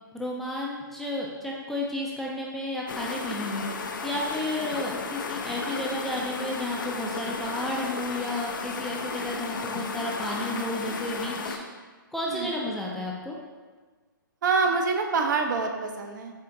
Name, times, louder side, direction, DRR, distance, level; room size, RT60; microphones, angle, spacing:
voice 1, 0.1-11.7 12.1-13.4, left 1 dB, ahead, -4 dB, 0.3 m, -32 dB
sound 1, 2.9-11.6, left 4 dB, 70° left, 0.5 m, -34 dB
voice 2, 14.4-16.3, right 4 dB, 60° right, 4 dB, 0.6 m, -26 dB
4.5 x 2.5 x 3.6 m, 1.4 s
hypercardioid pair, 135°, 11 cm